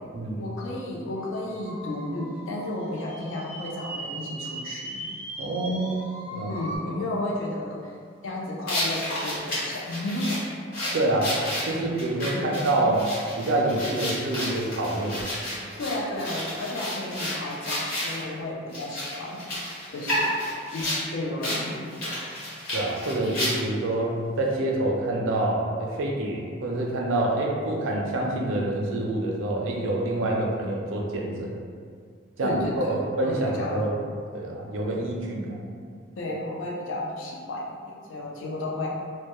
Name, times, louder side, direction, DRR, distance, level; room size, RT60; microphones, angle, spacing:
voice 1, 0.4-5.0 6.5-7.9 8.2-10.4 12.3-12.9 15.8-20.3 20.7-22.1 32.4-33.9 36.2-38.9, left 1 dB, 85° left, -2 dB, 0.4 m, -33 dB
sound 1, 1.1-6.8, right 1 dB, 10° right, 0.4 m, -39 dB
voice 2, 5.4-6.5 10.9-11.3 11.6-13.0 13.4-15.2 22.7-31.5 32.4-34.0 34.3-35.6, right 1 dB, 90° right, -1 dB, 0.4 m, -27 dB
sound 2, 8.7-18.2 18.7-21.0 21.4-21.6 21.9-23.8, left 1 dB, 50° left, 0.9 m, -31 dB
2.2 x 2.1 x 2.9 m, 2.1 s
head